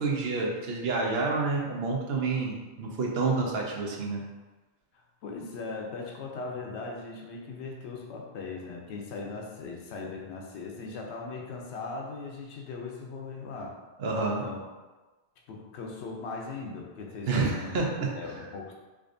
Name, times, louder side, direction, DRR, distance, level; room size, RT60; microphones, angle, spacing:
voice 1, 0.0-4.2 14.0-14.4 17.3-18.1, right 3 dB, 70° right, -1 dB, 0.9 m, -28 dB
voice 2, 5.2-13.8 14.4-14.6 15.5-17.8 18.1-18.7, left 3 dB, 90° left, 0 dB, 0.9 m, -39 dB
4.6 x 2.5 x 2.5 m, 1.2 s
omnidirectional pair, 1.1 m